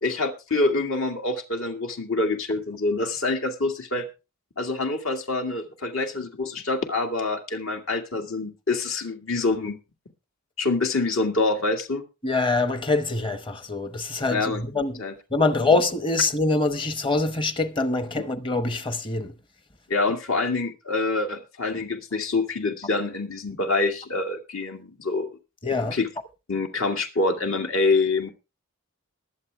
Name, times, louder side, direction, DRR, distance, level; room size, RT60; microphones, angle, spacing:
voice 1, 0.0-4.1 4.6-9.8 10.6-12.0 14.3-14.6 15.0-15.1 19.9-25.3 25.9-26.1 26.5-28.3, left 3 dB, 70° left, 2.1 m, -26 dB
voice 2, 12.2-15.0 15.3-19.3 25.6-26.0, left 3 dB, 25° left, 0.9 m, -24 dB
21.5 x 7.9 x 3.5 m
head